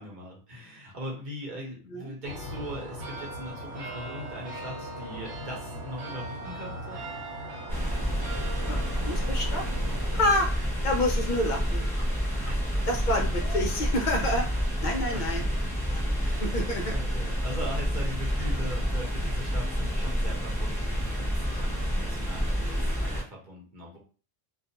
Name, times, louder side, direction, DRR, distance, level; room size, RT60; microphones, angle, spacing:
voice 1, 0.0-7.1 12.5-12.9 15.1-15.5 16.1-16.6 16.9-24.0, equal, 45° right, -3 dB, 1.0 m, -40 dB
sound 1, 2.2-10.4, right 1 dB, 75° right, 1.1 m, -39 dB
sound 2, 7.7-23.2, equal, 5° left, 0.6 m, -29 dB
voice 2, 8.7-9.7 10.1-10.5 10.8-11.8 12.9-15.4 15.9-16.1 16.4-16.9 22.6-23.2, left 1 dB, 55° left, 1 dB, 0.6 m, -29 dB
2.3 x 2.3 x 2.8 m, 0.38 s
omnidirectional pair, 1.2 m